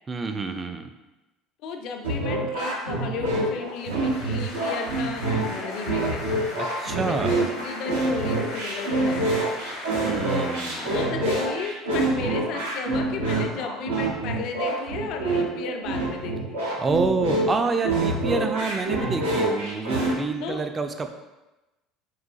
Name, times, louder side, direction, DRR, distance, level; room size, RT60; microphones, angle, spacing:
voice 1, 0.1-0.9 6.6-7.4 9.9-10.9 16.7-21.1, right 3 dB, 25° right, 6 dB, 0.3 m, -27 dB
voice 2, 1.6-6.2 7.0-9.3 10.9-16.7 20.4-20.6, left 5 dB, 60° left, 4 dB, 0.4 m, -34 dB
sound 1, 2.0-20.1, right 2 dB, 85° right, 0.6 m, -26 dB
sound 2, 3.6-11.0, left 2 dB, 85° left, 0.8 m, -38 dB
3.9 x 2.4 x 2.3 m, 1.0 s
hypercardioid pair, 70°, 0 cm